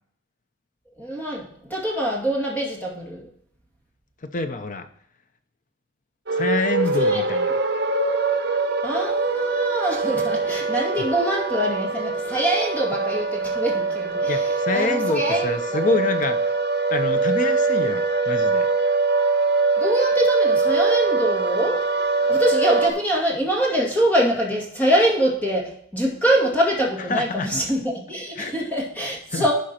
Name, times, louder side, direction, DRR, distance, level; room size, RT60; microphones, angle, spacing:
voice 1, 1.0-3.3 7.0-7.2 8.8-14.5 14.7-15.8 19.8-21.8 22.2-29.5, equal, 10° left, -3 dB, 2.2 m, -24 dB
voice 2, 4.3-4.9 6.3-7.5 11.0-11.1 14.3-16.6 16.9-18.7 27.1-27.5 28.4-28.6 29.3-29.4, left 3 dB, 45° left, 9 dB, 0.6 m, -26 dB
sound 1, 6.3-22.9, right 3 dB, 60° right, 1.1 m, -23 dB
11.5 x 5.1 x 4.3 m, 0.63 s
head